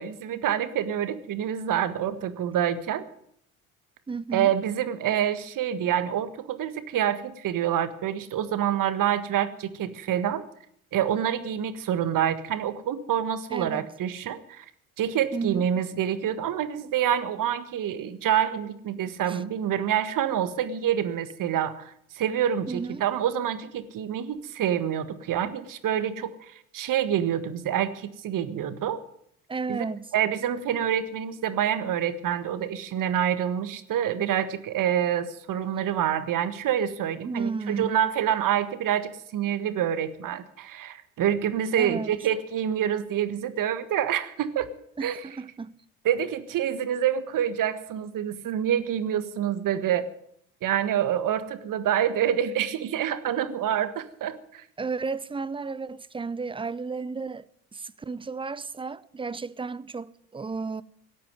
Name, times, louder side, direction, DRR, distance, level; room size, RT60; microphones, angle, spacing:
voice 1, 0.0-3.0 4.3-10.4 10.9-14.6 15.0-29.0 29.7-29.8 30.1-44.7 45.0-45.2 46.0-50.1 50.6-54.6, right 10 dB, 45° right, 1.6 m, -27 dB
voice 2, 4.1-4.5 13.5-13.9 15.3-15.7 19.3-19.4 22.7-23.0 29.5-30.1 37.2-37.9 41.8-42.1 45.0-45.8 54.8-60.8, right 4 dB, 10° right, 0.6 m, -33 dB
17.5 x 8.6 x 9.3 m
hypercardioid pair, 60°, 43 cm